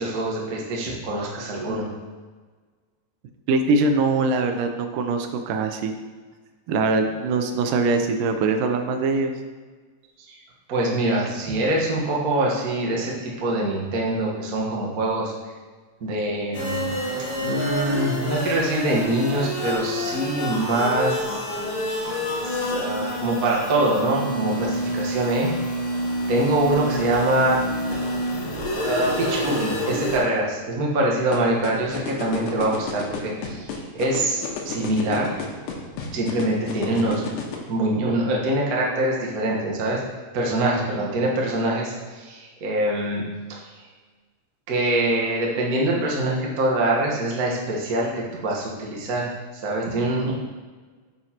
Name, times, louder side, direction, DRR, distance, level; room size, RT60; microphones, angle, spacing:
voice 1, 0.0-1.9 10.2-10.4 10.7-15.3 16.0-16.9 17.4-21.4 21.8-22.2 22.4-25.5 26.3-27.6 28.8-35.3 36.1-37.2 37.7-40.0 40.3-43.2 43.5-43.6 44.7-50.3, right 1 dB, 65° right, -3 dB, 0.9 m, -24 dB
voice 2, 3.5-5.9 6.7-9.3, right 3 dB, 85° right, 6 dB, 2.3 m, -22 dB
sound 1, 16.5-30.2, equal, 60° left, 1.9 m, -27 dB
sound 2, 31.3-37.6, left 7 dB, 75° left, 2.3 m, -31 dB
9.0 x 6.3 x 2.9 m, 1.4 s
omnidirectional pair, 3.8 m